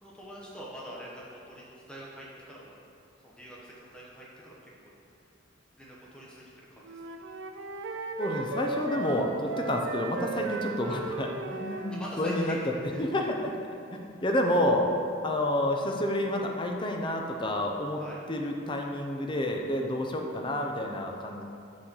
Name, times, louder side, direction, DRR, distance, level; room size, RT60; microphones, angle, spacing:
voice 1, 0.0-2.7 3.2-4.9 5.8-7.0 10.8-11.0 11.9-12.6 12.9-13.0 18.0-18.2, equal, 5° left, -6 dB, 0.9 m, -44 dB
Wind instrument woodwind instrument, 6.8-12.1, right 4 dB, 65° right, 0.4 m, -36 dB
voice 2, 8.2-12.6 13.0-13.5 13.9-14.9 15.2-18.0 18.3-21.4, left 1 dB, 25° left, 2 dB, 0.5 m, -29 dB
6.2 x 3.9 x 6.1 m, 2.5 s
head